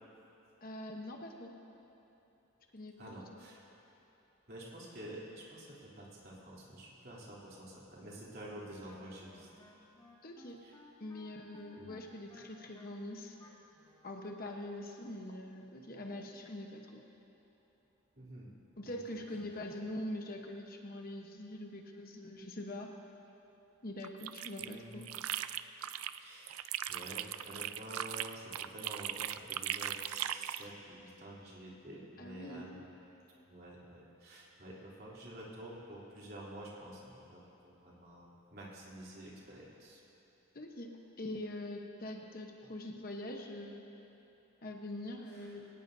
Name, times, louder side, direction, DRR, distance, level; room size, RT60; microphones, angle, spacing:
voice 1, 0.6-1.6 2.7-3.4 10.2-10.6 11.0-13.4 14.0-17.0 18.8-22.9 23.8-25.1 32.2-32.6 40.5-43.8 44.6-45.7, left 1 dB, 45° left, 2 dB, 1.1 m, -44 dB
voice 2, 3.0-3.6 4.5-9.5 10.6-10.7 11.8-12.0 18.2-18.5 18.8-19.0 19.3-19.6 24.6-25.2 26.2-26.6 26.9-32.9 33.5-40.0 45.3-45.5, right 1 dB, 45° right, -5 dB, 3.3 m, -49 dB
Wind instrument woodwind instrument, 8.5-14.1, left 1 dB, 20° left, 2.1 m, -60 dB
sound 1, 24.0-26.2 26.5-30.7, right 11 dB, 85° right, 0.4 m, -39 dB
22.5 x 18.5 x 2.7 m, 3.0 s
head